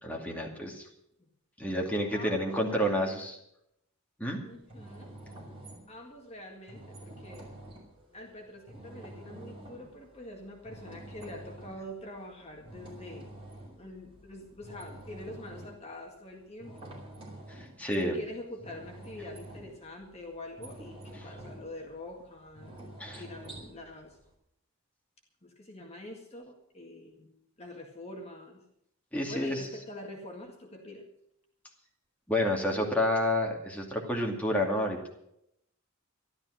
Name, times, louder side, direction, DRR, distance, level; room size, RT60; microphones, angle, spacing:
voice 1, 0.0-0.9 1.6-3.4 4.2-4.4 17.5-18.2 23.0-23.2 29.1-29.7 32.3-35.1, left 1 dB, 5° left, -1 dB, 2.4 m, -29 dB
voice 2, 2.1-3.2 4.4-5.1 5.9-7.5 8.1-13.3 13.8-16.9 18.0-24.2 25.4-28.6 29.3-31.1, left 1 dB, 30° left, 1 dB, 1.9 m, -45 dB
sound 1, 4.5-24.3, right 1 dB, 25° right, 5.1 m, -48 dB
13.5 x 12.5 x 6.4 m, 0.77 s
head